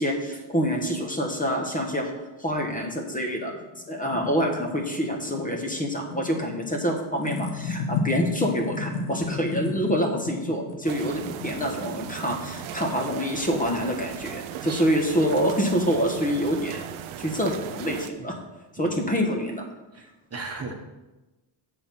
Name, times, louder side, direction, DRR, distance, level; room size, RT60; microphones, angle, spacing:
voice 1, 0.0-2.1 2.4-3.5 3.9-16.9 17.2-18.4 18.7-19.7, equal, 15° left, 2 dB, 1.3 m, -26 dB
sound 1, 3.5-13.6, left 3 dB, 85° left, 1.5 m, -34 dB
sound 2, 10.9-18.1, right 11 dB, 75° right, 0.7 m, -37 dB
voice 2, 19.9-20.7, right 3 dB, 30° right, 2 dB, 1.3 m, -37 dB
7.0 x 7.0 x 5.6 m, 1.1 s
cardioid pair, 105°, 49 cm